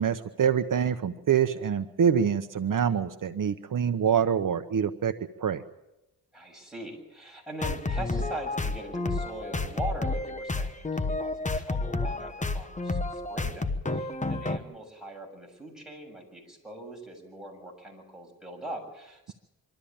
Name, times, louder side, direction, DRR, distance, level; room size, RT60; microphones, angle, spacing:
voice 1, 0.0-5.1 5.4-5.6, right 8 dB, 65° right, 9 dB, 0.9 m, -25 dB
voice 2, 6.3-10.9 11.1-19.3, right 1 dB, ahead, 0 dB, 6.9 m, -41 dB
sound 1, 7.6-14.6, left 2 dB, 20° left, 1.1 m, -30 dB
25.0 x 13.0 x 8.7 m, 0.95 s
wide cardioid pair, 95°, 36 cm